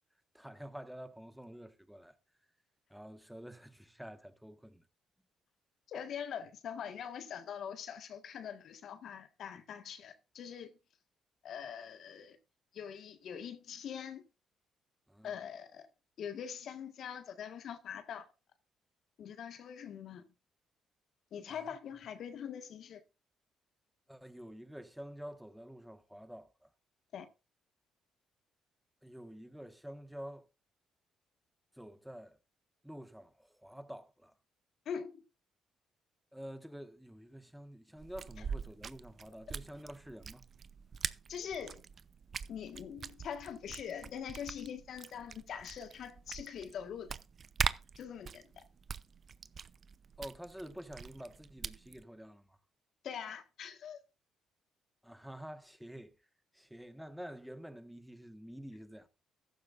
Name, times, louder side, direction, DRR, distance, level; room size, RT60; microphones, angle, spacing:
voice 1, 0.3-2.2 2.9-4.8 15.1-15.3 21.5-21.8 24.1-26.7 29.0-30.5 31.8-32.4 32.8-34.3 36.3-40.4 50.2-52.6 55.0-56.1 56.5-59.1, equal, 5° right, 1.5 m, -48 dB
voice 2, 5.9-10.8 11.4-12.4 12.7-14.2 15.2-15.9 16.2-18.3 19.2-20.2 21.3-23.0 27.1-27.3 34.8-35.2 41.3-41.8 42.5-47.2 48.0-48.6 53.0-54.0, left 8 dB, 65° left, 1.6 m, -43 dB
sound 1, 38.0-52.0, right 6 dB, 50° right, 0.7 m, -43 dB
14.5 x 12.0 x 2.6 m
hypercardioid pair, 50°, 0 cm